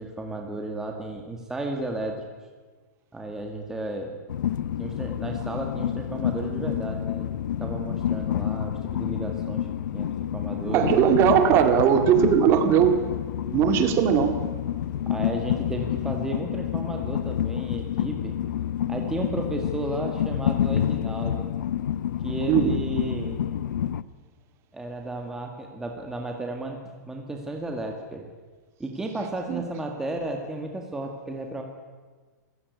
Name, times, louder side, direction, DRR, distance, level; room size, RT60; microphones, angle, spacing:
voice 1, 0.0-2.2 3.1-4.2 4.8-9.7 9.9-10.9 15.0-18.3 18.9-21.5 22.2-23.4 24.7-28.3 28.8-31.6, right 2 dB, 5° right, 2 dB, 1.8 m, -33 dB
Train, 4.3-24.0, left 10 dB, 80° left, 0.9 m, -28 dB
voice 2, 10.7-13.0 13.5-14.4 22.5-22.8 29.5-29.6, right 8 dB, 25° right, 8 dB, 2.1 m, -19 dB
27.0 x 16.0 x 9.6 m, 1.4 s
supercardioid pair, 170°, 10 cm